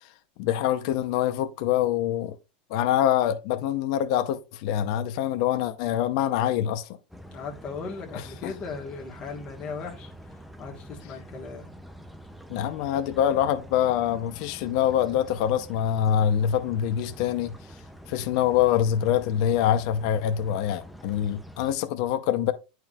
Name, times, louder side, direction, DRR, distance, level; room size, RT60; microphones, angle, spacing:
voice 1, 0.4-2.3 2.7-6.9 8.4-8.5 12.5-17.5 18.1-22.5, left 10 dB, 50° left, 0.7 m, -25 dB
sound 1, 7.1-21.7, equal, ahead, 0.5 m, -46 dB
voice 2, 7.3-11.7, left 4 dB, 25° left, 1.3 m, -38 dB
10.5 x 4.7 x 2.4 m
supercardioid pair, 175°, 5 cm